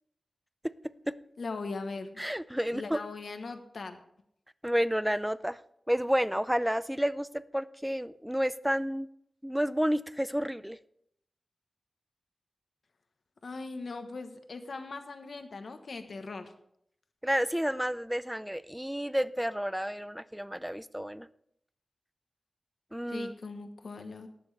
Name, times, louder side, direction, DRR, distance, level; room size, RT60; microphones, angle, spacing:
voice 1, 1.4-2.1 2.7-4.0 13.4-16.5 23.1-24.3, left 3 dB, 75° left, 7 dB, 1.2 m, -40 dB
voice 2, 2.2-3.0 4.6-5.6 5.9-9.1 9.4-10.8 17.2-21.3 22.9-23.3, equal, 5° right, 15 dB, 0.5 m, -30 dB
19.5 x 7.0 x 3.4 m, 0.72 s
wide cardioid pair, 75°, 0 cm